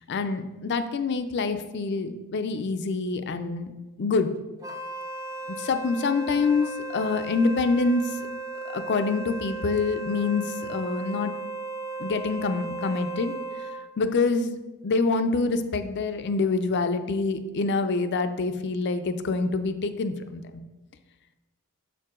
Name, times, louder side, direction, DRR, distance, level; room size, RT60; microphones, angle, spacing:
voice 1, 0.1-3.7 4.0-4.3 5.6-8.1 8.7-11.3 12.0-13.3 14.0-14.5 14.8-20.6, left 4 dB, 55° left, 9 dB, 0.4 m, -26 dB
Wind instrument woodwind instrument, 4.6-13.9, right 3 dB, 15° right, 0.4 m, -36 dB
6.8 x 4.6 x 3.7 m, 1.1 s
head